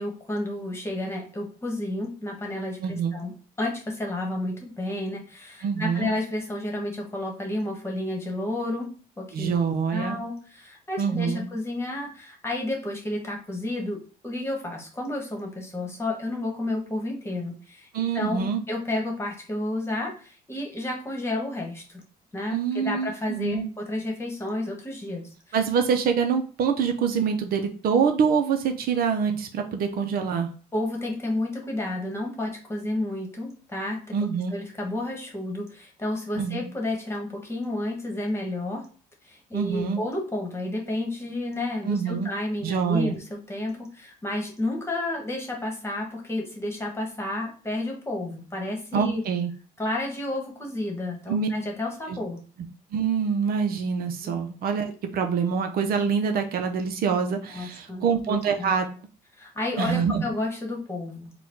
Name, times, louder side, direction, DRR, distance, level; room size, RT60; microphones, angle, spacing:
voice 1, 0.0-3.3 3.6-8.9 9.2-9.6 9.9-17.9 18.1-22.0 22.3-25.6 30.7-34.2 34.5-38.8 39.2-49.2 49.8-52.4 54.2-54.3 57.5-58.7 59.4-61.3, left 1 dB, 15° left, 0 dB, 1.3 m, -31 dB
voice 2, 2.8-3.1 5.6-6.1 9.3-10.2 11.0-11.5 17.9-18.6 22.5-23.7 25.5-30.5 34.1-34.5 36.4-36.6 39.5-40.0 41.9-42.3 42.6-43.1 48.9-49.5 51.3-51.5 52.1-52.2 52.9-58.9 59.8-60.2, right 6 dB, 60° right, 5 dB, 0.6 m, -25 dB
4.0 x 2.3 x 4.4 m, 0.38 s
cardioid pair, 110°, 17 cm